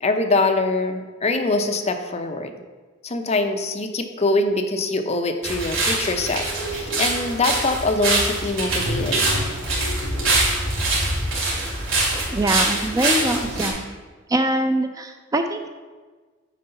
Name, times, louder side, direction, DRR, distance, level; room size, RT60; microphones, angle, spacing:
voice 1, 0.0-2.5 3.0-9.2, left 2 dB, 35° left, 6 dB, 0.6 m, -23 dB
sound 1, 5.4-13.7, right 2 dB, 75° right, 2.5 m, -23 dB
voice 2, 12.3-13.8 14.3-15.7, right 1 dB, 15° right, 7 dB, 0.4 m, -23 dB
9.3 x 3.9 x 5.6 m, 1.4 s
head